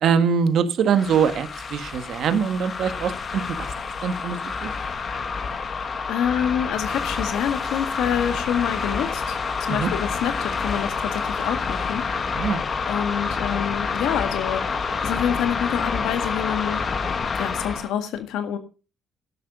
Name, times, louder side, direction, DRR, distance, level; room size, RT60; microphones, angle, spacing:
voice 1, 0.0-3.7 4.0-4.7 9.7-9.9 12.3-12.7, right 7 dB, 70° right, 10 dB, 1.7 m, -23 dB
sound 1, 0.9-17.9, left 5 dB, 45° left, 1.8 m, -28 dB
voice 2, 5.7-12.5 12.9-16.8 17.4-18.6, left 9 dB, 90° left, 9 dB, 1.7 m, -27 dB
12.0 x 10.5 x 5.5 m, 0.34 s
cardioid pair, 90°, 0 cm